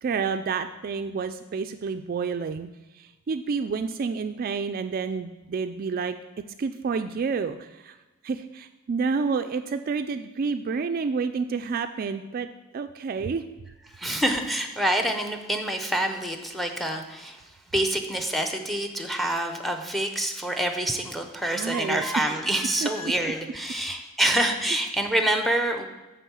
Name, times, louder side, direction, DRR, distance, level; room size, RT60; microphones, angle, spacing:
voice 1, 0.0-2.7 3.0-6.2 6.6-7.9 8.2-12.5 12.7-13.4 21.5-22.0 22.8-22.9, right 5 dB, 40° right, 9 dB, 0.3 m, -29 dB
voice 2, 13.9-17.4 17.7-25.9, right 1 dB, ahead, 5 dB, 0.7 m, -26 dB
9.3 x 3.6 x 6.9 m, 1.1 s
head